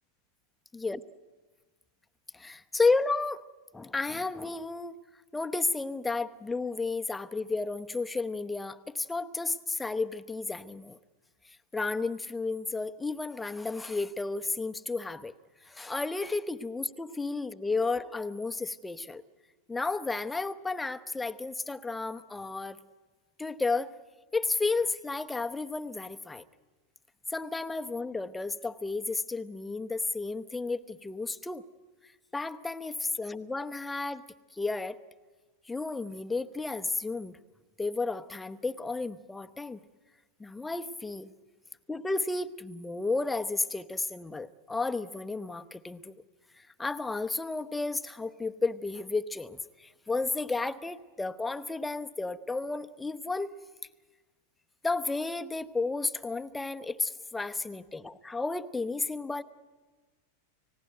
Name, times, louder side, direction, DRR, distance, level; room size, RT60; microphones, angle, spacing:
voice 1, 2.3-3.4 3.7-5.0 5.3-11.0 11.7-15.3 15.6-19.2 19.7-22.8 23.4-23.9 24.3-26.4 27.3-31.6 32.3-34.3 34.5-35.0 35.7-37.3 37.8-39.8 40.4-41.3 41.9-46.1 46.6-53.5 54.8-59.4, left 3 dB, 10° left, 10 dB, 0.8 m, -32 dB
30.0 x 16.5 x 9.1 m, 1.3 s
figure-of-eight pair, 90°, 0 cm